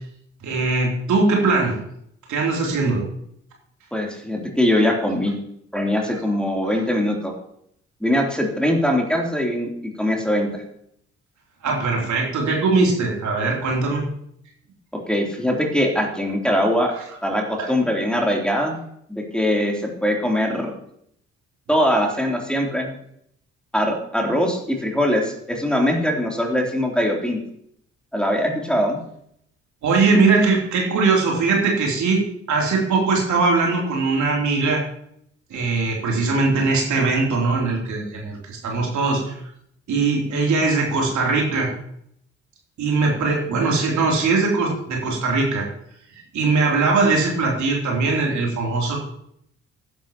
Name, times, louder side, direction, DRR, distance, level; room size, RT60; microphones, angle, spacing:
voice 1, 0.4-1.8 2.3-3.1 11.6-14.0 17.6-17.7 29.8-32.2 32.5-34.8 35.5-39.4 39.9-41.7 42.8-45.7 46.3-49.0, right 3 dB, 55° right, -1 dB, 3.4 m, -20 dB
voice 2, 3.9-5.4 5.7-7.3 8.0-9.7 10.0-10.6 15.1-16.9 17.2-18.8 19.1-20.7 21.7-22.9 23.7-27.4 28.1-29.0, equal, 5° left, 0 dB, 3.3 m, -22 dB
15.0 x 11.5 x 3.0 m, 0.70 s
figure-of-eight pair, 40°, 35 cm